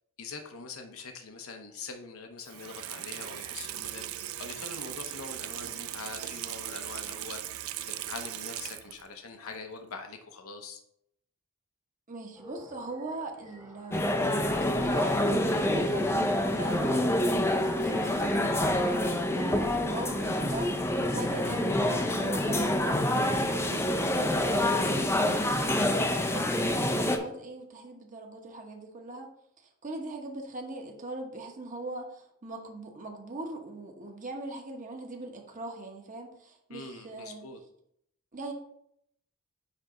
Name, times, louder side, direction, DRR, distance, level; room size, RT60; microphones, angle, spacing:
voice 1, 0.2-7.4 7.9-10.8 36.7-37.6, left 4 dB, 70° left, 5 dB, 0.8 m, -43 dB
Water tap faucet / Sink (filling or washing), 2.4-9.1 9.5-9.6, right 12 dB, 65° right, 0.4 m, -39 dB
voice 2, 12.1-17.1 17.6-29.3 29.6-37.5 38.3-38.5, right 2 dB, 35° right, 2 dB, 1.2 m, -40 dB
sound 1, 12.3-26.3, equal, 15° right, 1.1 m, -50 dB
sound 2, 13.9-27.2, left 1 dB, 10° left, 0.5 m, -27 dB
9.5 x 3.3 x 3.9 m, 0.74 s
head